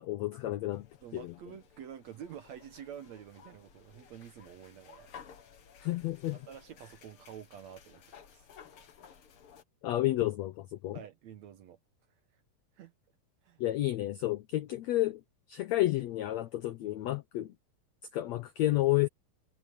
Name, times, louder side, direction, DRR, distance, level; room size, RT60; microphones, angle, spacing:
voice 1, 0.0-0.9 1.1-1.3 5.8-6.4 9.8-11.0 13.6-15.2 15.5-17.5 18.1-19.1, left 16 dB, 85° left, 1.5 m, -31 dB
sound 1, 0.7-9.6, left 7 dB, 50° left, 2.0 m, -56 dB
voice 2, 1.0-5.1 6.3-8.5 10.9-11.8 12.7-12.9 13.4-13.6, right 9 dB, 65° right, 1.9 m, -48 dB
omnidirectional pair, 4.1 m